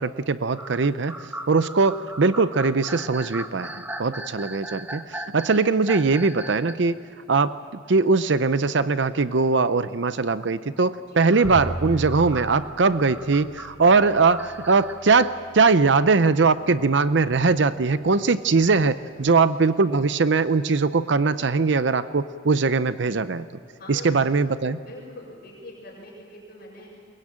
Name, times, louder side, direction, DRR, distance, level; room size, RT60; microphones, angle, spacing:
voice 1, 0.0-7.0 7.3-7.6 7.9-23.4 23.9-24.8, right 4 dB, 60° right, 13 dB, 0.6 m, -21 dB
sound 1, 0.5-6.9 7.3-7.4 8.9-9.0 11.3-15.3, right 1 dB, 10° right, 1.0 m, -38 dB
Bowed string instrument, 11.4-17.6, right 1 dB, 75° left, 5.8 m, -38 dB
voice 2, 23.7-24.3 24.8-26.9, left 1 dB, 50° left, -6 dB, 5.6 m, -43 dB
23.0 x 20.5 x 8.9 m, 2.3 s
head